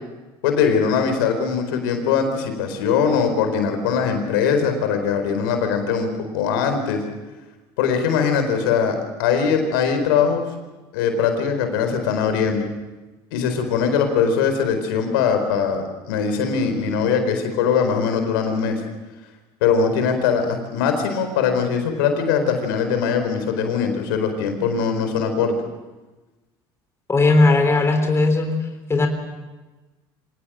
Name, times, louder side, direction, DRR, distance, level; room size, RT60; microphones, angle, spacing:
voice 1, 0.4-7.0 7.8-10.4 10.9-12.7 13.3-18.8 19.6-25.6, left 6 dB, 85° left, 6 dB, 4.4 m, -21 dB
voice 2, 27.1-28.5 28.9-29.1, left 2 dB, 25° left, 5 dB, 3.7 m, -17 dB
25.5 x 18.5 x 7.6 m, 1.2 s
supercardioid pair, 85°, 11 cm